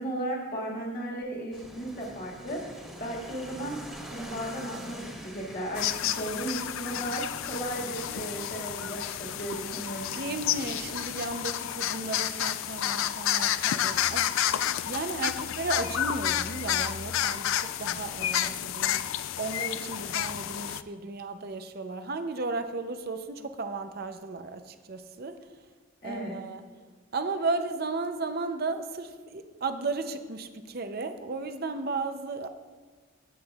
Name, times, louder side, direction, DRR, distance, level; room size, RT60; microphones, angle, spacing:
voice 1, 0.0-3.8 4.1-10.1 26.0-26.4, right 1 dB, 45° left, -3 dB, 1.8 m, -35 dB
sound 1, 1.5-11.3, equal, 5° right, 1.6 m, -46 dB
sound 2, 5.8-20.8, left 11 dB, 70° left, 0.3 m, -30 dB
voice 2, 10.2-19.1 19.4-25.5 26.0-26.6 27.1-32.5, right 3 dB, 45° right, 8 dB, 0.6 m, -34 dB
16.0 x 8.1 x 2.4 m, 1.5 s
head